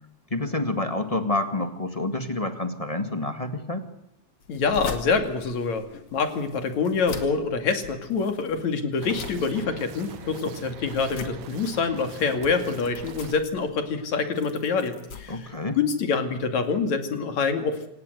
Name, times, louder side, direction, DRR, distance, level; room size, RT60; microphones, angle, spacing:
voice 1, 0.3-3.9 15.3-15.8, left 2 dB, 15° left, 8 dB, 1.3 m, -28 dB
sound 1, 4.4-16.1, left 5 dB, 55° left, 3.2 m, -42 dB
voice 2, 4.5-5.9 6.1-15.5 15.8-17.9, left 5 dB, 70° left, 7 dB, 3.7 m, -26 dB
sound 2, 9.0-13.4, right 8 dB, 75° right, 2.6 m, -43 dB
27.5 x 18.0 x 8.1 m, 0.84 s
omnidirectional pair, 3.3 m